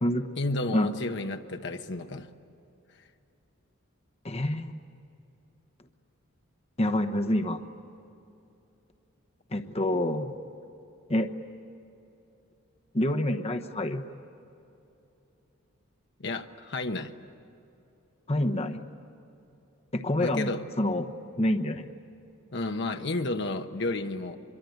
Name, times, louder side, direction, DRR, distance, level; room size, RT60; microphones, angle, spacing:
voice 1, 0.4-2.3 16.2-17.1 20.2-20.6 22.5-24.4, left 2 dB, 60° left, 6 dB, 1.1 m, -31 dB
voice 2, 4.2-4.8 6.8-7.6 9.5-10.4 11.1-11.3 12.9-14.0 18.3-18.8 19.9-21.1 21.4-21.9, left 1 dB, 30° left, 6 dB, 1.0 m, -27 dB
25.0 x 23.5 x 9.3 m, 2.8 s
head